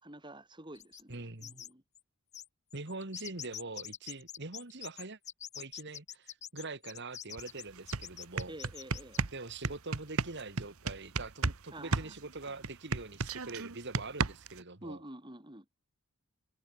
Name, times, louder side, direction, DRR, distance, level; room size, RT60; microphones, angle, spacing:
voice 1, 0.0-1.8 8.5-9.3 11.7-12.1 14.8-15.6, right 1 dB, 20° right, 4.8 m, -48 dB
sound 1, 0.8-1.1 1.4-1.7 2.0-2.1 2.3-9.2, left 10 dB, 30° left, 1.7 m, -45 dB
voice 2, 1.1-1.6 2.7-5.2 5.6-8.5 9.3-15.0, right 3 dB, 50° right, 2.0 m, -44 dB
sound 2, 7.4-7.5 7.8-11.6 11.9-14.6, right 4 dB, 75° right, 1.3 m, -33 dB
head